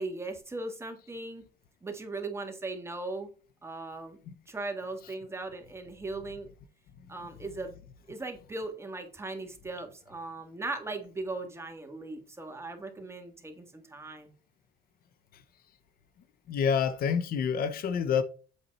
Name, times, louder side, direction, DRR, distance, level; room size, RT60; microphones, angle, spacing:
voice 1, 0.0-1.4 1.8-3.3 3.6-4.2 4.5-6.5 7.1-7.7 8.1-14.3, right 2 dB, 15° right, 1.7 m, -38 dB
voice 2, 16.5-18.2, left 7 dB, 60° left, 0.8 m, -27 dB
8.1 x 4.2 x 4.2 m
cardioid pair, 110°, 17 cm